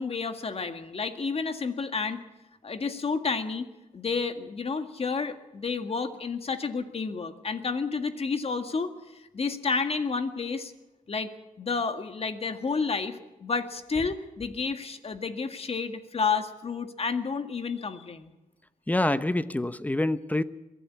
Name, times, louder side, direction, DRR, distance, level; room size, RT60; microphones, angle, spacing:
voice 1, 0.0-2.2 2.6-3.7 3.9-10.7 11.1-11.3 11.6-18.3, left 4 dB, 45° left, 8 dB, 1.9 m, -30 dB
voice 2, 18.9-20.4, left 1 dB, 10° left, 13 dB, 1.0 m, -26 dB
22.5 x 15.0 x 8.5 m, 1.0 s
cardioid pair, 95°, 14 cm